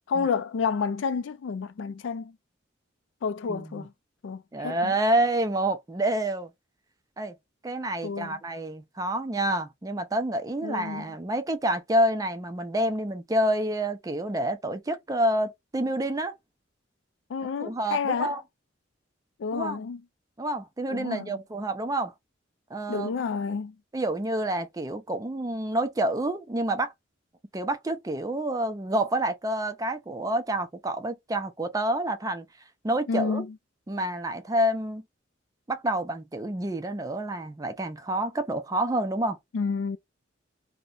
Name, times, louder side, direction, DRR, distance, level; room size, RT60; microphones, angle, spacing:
voice 1, 0.1-2.3 3.2-3.9 4.2-4.9 8.0-8.4 10.6-11.1 17.3-18.4 19.4-20.0 20.9-21.4 22.9-23.8 33.1-33.6 39.5-40.0, left 5 dB, 75° left, 0.3 m, -30 dB
voice 2, 3.5-3.9 4.5-6.5 7.2-7.3 7.6-16.3 17.6-18.4 19.5-19.8 20.4-22.1 22.7-23.1 23.9-26.9 27.5-32.4 32.8-33.5 33.9-35.0 35.7-39.4, right 1 dB, 20° right, 0.4 m, -28 dB
2.7 x 2.1 x 2.3 m
head